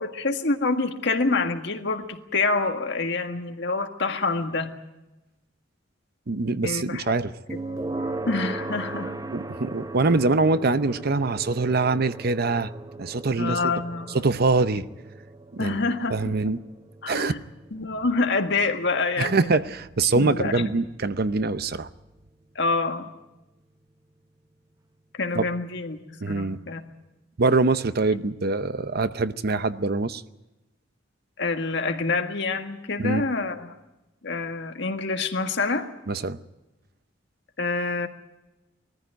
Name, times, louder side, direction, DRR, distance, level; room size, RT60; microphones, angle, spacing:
voice 1, 0.0-4.7 6.6-7.1 7.5-7.6 8.3-9.1 13.4-14.2 15.6-16.3 17.0-17.4 17.7-19.4 20.2-20.7 22.6-23.1 25.1-26.0 26.3-26.8 31.4-33.7 34.2-35.9 37.6-38.1, left 3 dB, 65° left, 5 dB, 1.7 m, -26 dB
voice 2, 6.3-7.3 9.3-12.7 13.0-13.7 14.1-14.9 15.5-15.8 16.1-16.6 17.1-17.3 19.2-21.9 25.4-25.5 26.2-26.6 27.4-30.2 33.0-33.2 36.1-36.4, right 3 dB, 55° right, 13 dB, 0.7 m, -24 dB
sound 1, 7.5-22.4, right 2 dB, 20° right, 0.7 m, -38 dB
20.5 x 14.5 x 9.2 m, 0.99 s
head